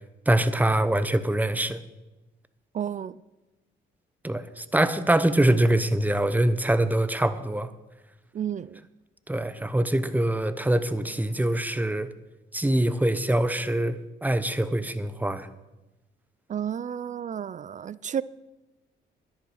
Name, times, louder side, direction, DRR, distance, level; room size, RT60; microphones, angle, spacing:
voice 1, 0.3-1.8 4.2-7.7 9.3-12.1 12.5-15.5, right 1 dB, 10° right, 0.9 m, -24 dB
voice 2, 2.7-3.2 8.3-8.8 16.5-18.2, right 9 dB, 40° right, 0.4 m, -31 dB
11.5 x 10.5 x 6.4 m
cardioid pair, 90°, 20 cm